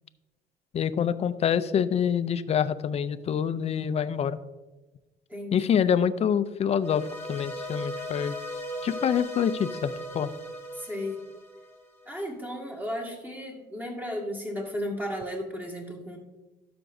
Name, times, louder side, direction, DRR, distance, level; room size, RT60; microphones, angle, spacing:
voice 1, 0.7-4.4 5.5-8.4 8.8-10.3, left 8 dB, 40° left, 14 dB, 0.4 m, -26 dB
voice 2, 5.3-6.0 10.7-11.2 12.0-16.2, equal, 10° right, 1 dB, 1.8 m, -34 dB
sound 1, 6.8-12.1, equal, 15° left, 1.5 m, -38 dB
12.5 x 6.0 x 2.6 m, 1.1 s
cardioid pair, 110°, 17 cm